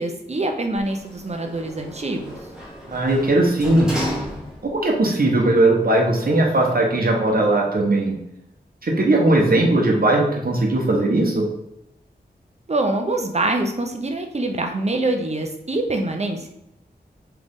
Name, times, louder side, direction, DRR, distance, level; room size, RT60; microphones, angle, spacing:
voice 1, 0.0-2.3 12.7-16.5, right 2 dB, 40° right, 4 dB, 0.7 m, -25 dB
Sliding door, 0.8-4.9 5.3-5.4, equal, 5° right, 1.6 m, -33 dB
voice 2, 2.9-3.9 4.6-8.1 8.8-11.5, right 2 dB, 55° right, 0 dB, 1.1 m, -18 dB
3.8 x 3.3 x 3.6 m, 0.84 s
wide cardioid pair, 55°, 18 cm